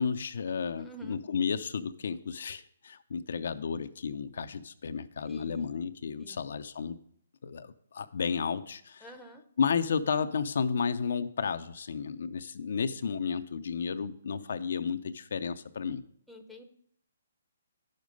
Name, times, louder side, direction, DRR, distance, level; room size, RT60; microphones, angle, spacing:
voice 1, 0.0-7.0 7.4-9.1 9.6-16.0, left 6 dB, 65° left, 9 dB, 0.6 m, -32 dB
voice 2, 0.8-1.2 5.3-5.8 6.2-6.5 9.0-9.4 16.3-16.6, right 1 dB, ahead, 3 dB, 0.9 m, -49 dB
10.0 x 6.5 x 5.2 m, 0.65 s
hypercardioid pair, 145°, 0 cm